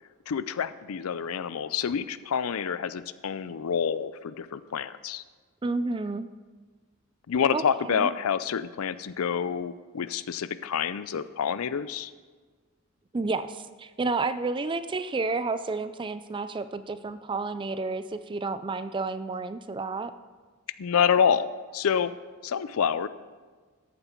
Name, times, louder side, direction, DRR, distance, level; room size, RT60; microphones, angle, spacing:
voice 1, 0.3-5.2 7.3-12.1 20.8-22.1 22.4-23.1, left 7 dB, 70° left, 15 dB, 0.4 m, -27 dB
voice 2, 5.6-6.3 7.5-8.1 13.1-20.1, right 3 dB, 20° right, 12 dB, 0.3 m, -31 dB
13.5 x 8.0 x 4.5 m, 1.4 s
head